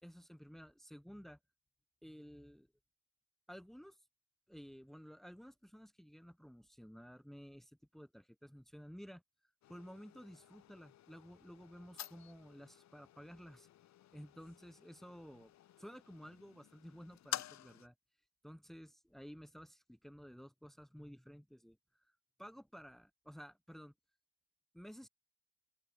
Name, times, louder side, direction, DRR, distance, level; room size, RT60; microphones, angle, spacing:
voice 1, 0.0-1.4 2.0-2.7 3.5-4.1 4.5-13.7 14.1-15.5 15.8-17.9 18.4-23.9 24.7-25.1, equal, ahead, 4.8 m, -54 dB
sound 1, 9.6-17.9, left 13 dB, 45° left, 2.2 m, -50 dB
open air
supercardioid pair, 100°, 37 cm